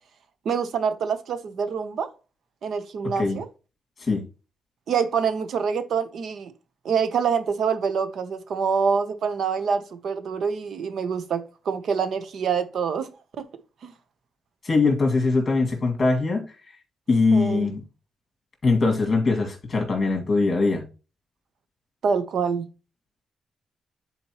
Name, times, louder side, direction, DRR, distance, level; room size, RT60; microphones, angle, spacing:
voice 1, 0.4-2.1 2.6-3.5 4.9-6.5 6.8-13.1 13.4-13.5 13.8-13.9 17.3-17.7 22.0-22.7, right 6 dB, 70° right, 0.8 m, -26 dB
voice 2, 14.6-16.5 17.1-17.8 18.6-20.9, left 3 dB, 30° left, 2.2 m, -22 dB
9.8 x 4.3 x 3.0 m
cardioid pair, 130°, 0 cm